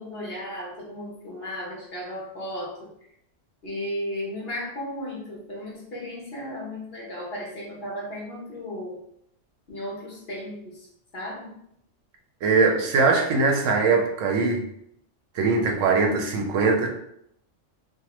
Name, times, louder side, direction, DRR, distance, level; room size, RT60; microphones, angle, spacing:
voice 1, 0.0-2.9 3.6-9.0 9.7-10.9 11.1-11.6, left 1 dB, 55° left, -5 dB, 1.2 m, -35 dB
voice 2, 12.4-14.6 15.4-16.9, right 4 dB, 90° right, 2 dB, 1.0 m, -21 dB
3.3 x 2.1 x 2.9 m, 0.74 s
omnidirectional pair, 1.3 m